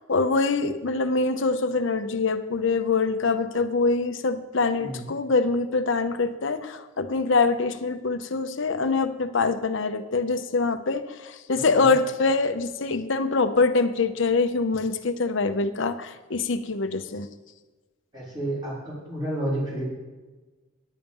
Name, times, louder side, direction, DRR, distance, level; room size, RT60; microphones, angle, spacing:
voice 1, 0.1-17.3, left 3 dB, 60° left, 10 dB, 0.7 m, -24 dB
voice 2, 4.8-5.1 11.5-11.9 18.1-19.8, right 1 dB, 20° right, -7 dB, 4.3 m, -31 dB
10.0 x 9.1 x 5.4 m, 1.2 s
head